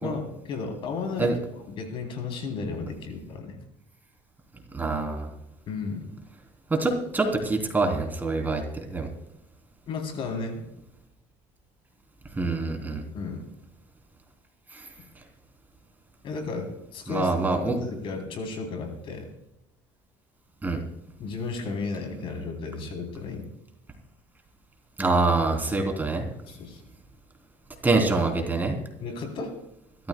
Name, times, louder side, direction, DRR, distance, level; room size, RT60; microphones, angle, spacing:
voice 1, 0.0-1.4 1.7-3.6 5.7-6.2 9.9-10.7 13.1-13.5 16.2-19.3 21.2-23.5 26.5-26.8 29.0-29.5, left 4 dB, 55° left, 4 dB, 3.5 m, -34 dB
voice 2, 4.7-5.3 6.7-8.6 8.9-9.1 12.3-13.0 14.7-14.8 17.1-17.8 20.6-20.8 25.0-26.2 27.8-28.7, right 3 dB, 15° right, 2 dB, 3.4 m, -25 dB
25.0 x 14.0 x 2.3 m, 0.83 s
cardioid pair, 110°, 11 cm